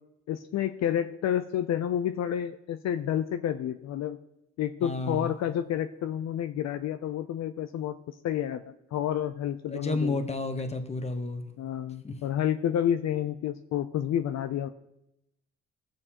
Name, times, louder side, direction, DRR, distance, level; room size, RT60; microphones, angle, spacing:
voice 1, 0.3-4.2 4.6-8.0 8.2-10.2 11.6-14.7, left 10 dB, 60° left, 9 dB, 0.5 m, -29 dB
voice 2, 4.8-5.3 9.7-11.5 12.0-12.2, left 2 dB, 20° left, 6 dB, 1.1 m, -31 dB
16.0 x 6.5 x 2.9 m, 0.86 s
cardioid pair, 90°, 30 cm